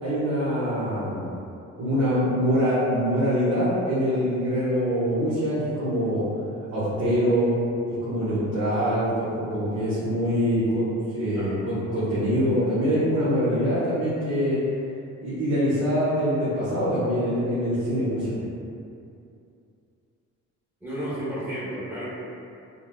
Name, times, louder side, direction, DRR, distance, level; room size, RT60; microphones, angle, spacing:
voice 1, 0.0-1.3 1.8-6.2 6.7-7.5 8.0-14.6 15.2-18.3, equal, 55° right, -13 dB, 1.2 m, -24 dB
voice 2, 20.8-22.0, equal, 5° right, -11 dB, 1.2 m, -32 dB
3.8 x 2.1 x 2.3 m, 2.6 s
cardioid pair, 90°, 30 cm